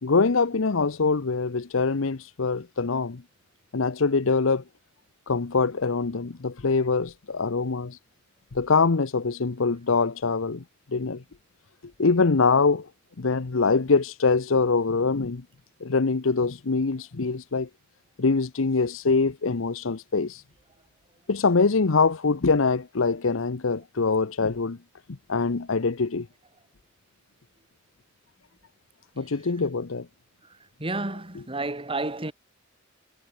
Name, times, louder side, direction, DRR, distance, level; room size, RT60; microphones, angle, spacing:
voice 1, 0.0-3.2 3.7-4.6 5.3-8.0 8.5-10.6 10.9-11.2 12.0-12.9 13.2-15.4 15.8-17.7 18.2-20.4 21.3-24.8 25.1-26.3 29.2-30.1, left 4 dB, 80° left, 0.8 m, -24 dB
voice 2, 30.8-32.3, right 2 dB, 25° right, 2.9 m, -30 dB
head